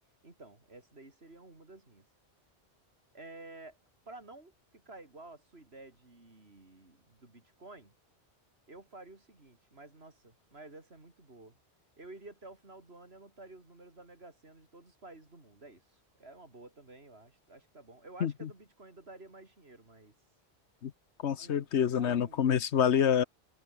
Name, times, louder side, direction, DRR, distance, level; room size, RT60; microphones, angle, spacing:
voice 1, 0.2-2.1 3.1-3.8 4.1-7.9 8.7-11.6 12.0-20.1 21.3-21.7 22.0-22.4, right 2 dB, 65° right, 4.3 m, -52 dB
voice 2, 21.2-23.2, left 8 dB, 80° left, 1.2 m, -27 dB
omnidirectional pair, 1.1 m